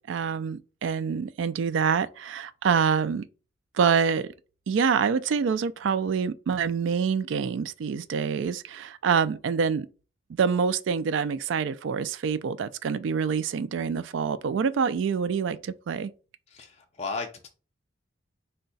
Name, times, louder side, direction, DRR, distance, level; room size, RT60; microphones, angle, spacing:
voice 1, 0.1-3.2 3.7-4.3 4.7-9.9 10.3-16.1, right 6 dB, 75° right, 0.3 m, -26 dB
voice 2, 16.5-17.5, left 4 dB, 35° left, 0.5 m, -35 dB
4.5 x 2.2 x 3.9 m
head